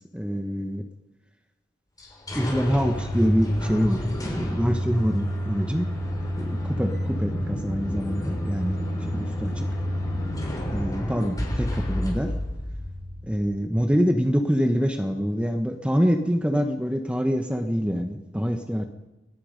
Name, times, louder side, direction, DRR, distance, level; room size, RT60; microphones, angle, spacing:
voice 1, 0.1-0.8 2.3-5.9 6.4-9.7 10.6-12.3 13.2-18.9, equal, 5° right, 5 dB, 1.3 m, -25 dB
sound 1, 2.0-13.6, equal, 20° left, 5.4 m, -29 dB
29.5 x 21.5 x 5.3 m, 1.0 s
head